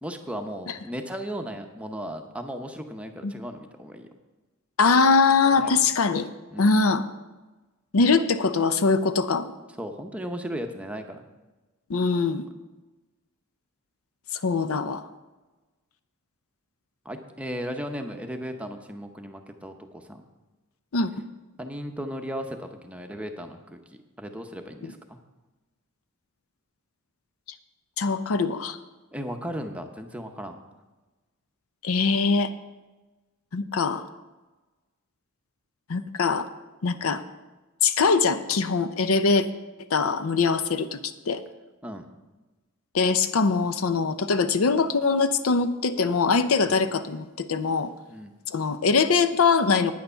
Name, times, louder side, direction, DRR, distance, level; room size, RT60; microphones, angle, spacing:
voice 1, 0.0-4.1 5.6-5.8 6.5-6.7 9.8-11.2 17.0-20.2 21.6-23.8 24.2-25.2 29.1-30.6 41.8-42.1 46.6-46.7 48.1-48.3, equal, 5° right, 5 dB, 0.8 m, -36 dB
voice 2, 4.8-6.3 6.6-7.0 7.9-9.5 11.9-12.4 14.3-15.0 20.9-21.1 24.8-24.9 28.0-28.8 31.8-32.5 33.5-34.0 35.9-36.5 36.8-37.2 37.8-39.5 39.9-41.0 41.3-41.4 42.9-47.9 48.5-49.9, left 4 dB, 65° left, 11 dB, 0.6 m, -22 dB
9.4 x 9.4 x 5.6 m, 1.2 s
head